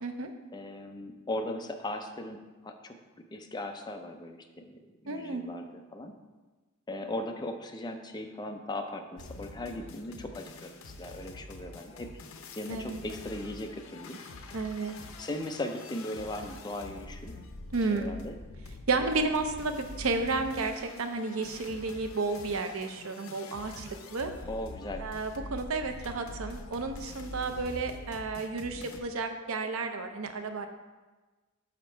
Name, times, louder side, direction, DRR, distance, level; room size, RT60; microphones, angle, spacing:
voice 1, 0.5-2.9 3.3-6.1 6.9-12.1 12.6-14.2 15.2-17.4 17.9-18.4 24.4-25.1 28.7-29.0, left 1 dB, 20° left, 5 dB, 0.5 m, -38 dB
voice 2, 5.1-5.4 12.7-13.0 14.5-15.0 17.7-18.1 18.9-24.3 25.0-30.7, right 3 dB, 85° right, 7 dB, 0.6 m, -32 dB
sound 1, 9.2-29.0, left 2 dB, 75° left, 0.6 m, -45 dB
6.1 x 5.1 x 4.5 m, 1.3 s
head